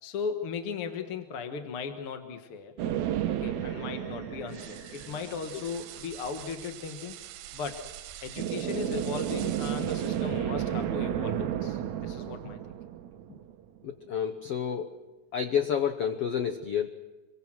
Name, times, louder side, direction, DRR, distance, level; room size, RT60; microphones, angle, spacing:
voice 1, 0.0-2.7 3.3-7.1 7.5-7.8 8.2-12.6, left 5 dB, 50° left, 6 dB, 1.7 m, -37 dB
sound 1, 2.8-12.1, left 1 dB, 70° left, 5.9 m, -61 dB
sound 2, 2.8-5.6 8.4-13.8, right 11 dB, 65° right, 2.0 m, -32 dB
sound 3, 4.5-10.4, right 13 dB, 90° right, 2.8 m, -46 dB
voice 2, 13.8-14.9 15.3-16.9, left 8 dB, 85° left, 8 dB, 1.3 m, -29 dB
26.0 x 24.0 x 6.2 m, 1.2 s
omnidirectional pair, 4.3 m